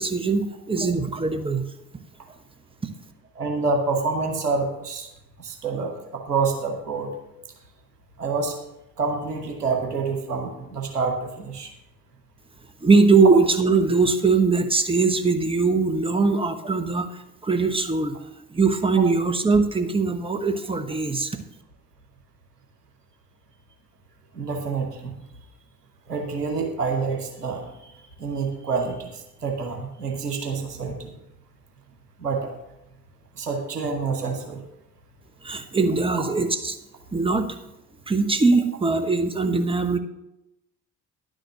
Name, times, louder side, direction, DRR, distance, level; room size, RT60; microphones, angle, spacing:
voice 1, 0.0-1.7 12.8-18.1 18.5-21.4 35.4-36.8 37.1-37.5 38.1-40.0, right 4 dB, 10° right, 7 dB, 1.1 m, -21 dB
voice 2, 3.3-5.1 5.4-7.1 8.2-8.6 9.0-11.7 24.3-25.1 26.1-27.6 28.2-31.2 32.2-32.5 33.3-34.6, right 4 dB, 85° right, 3 dB, 1.2 m, -27 dB
10.5 x 6.4 x 6.6 m, 0.90 s
figure-of-eight pair, 50°, 46 cm